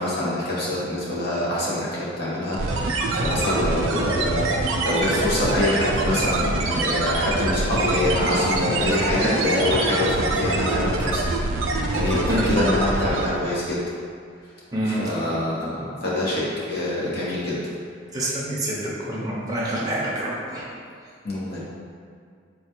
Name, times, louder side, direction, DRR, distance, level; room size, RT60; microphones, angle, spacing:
voice 1, 0.0-11.2 11.9-13.8 15.0-17.6 21.2-21.6, left 1 dB, 50° left, -8 dB, 0.9 m, -25 dB
sound 1, 2.5-13.4, right 2 dB, 75° right, 0.4 m, -24 dB
voice 2, 14.7-15.1 18.1-20.7, right 1 dB, 20° right, -6 dB, 0.6 m, -27 dB
3.9 x 2.2 x 2.9 m, 2.1 s
head